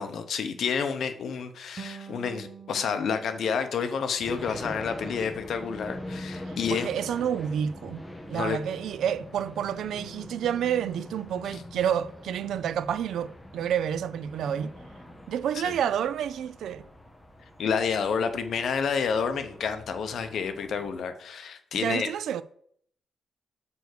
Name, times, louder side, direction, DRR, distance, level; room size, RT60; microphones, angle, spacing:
voice 1, 0.0-6.9 8.3-8.6 15.6-15.7 17.6-22.1, left 6 dB, 55° left, 0.8 m, -29 dB
sound 1, 1.8-4.9, right 7 dB, 30° right, 0.6 m, -47 dB
sound 2, 4.2-21.0, left 1 dB, 5° left, 0.8 m, -43 dB
voice 2, 6.5-8.0 8.3-14.7 15.3-16.9 21.7-22.4, right 9 dB, 75° right, 0.4 m, -29 dB
6.9 x 4.7 x 6.6 m
wide cardioid pair, 170°, 0 cm